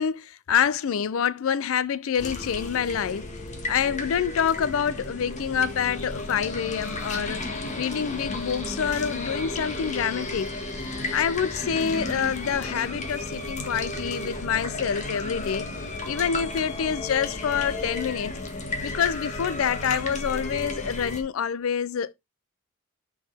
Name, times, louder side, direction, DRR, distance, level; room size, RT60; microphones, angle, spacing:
voice 1, 0.0-3.3 3.7-7.4 7.8-10.5 11.1-15.7 16.1-18.3 18.8-22.1, left 7 dB, 70° left, 0.4 m, -27 dB
sound 1, 2.2-21.2, left 2 dB, 35° left, 1.6 m, -33 dB
7.0 x 6.0 x 3.3 m
head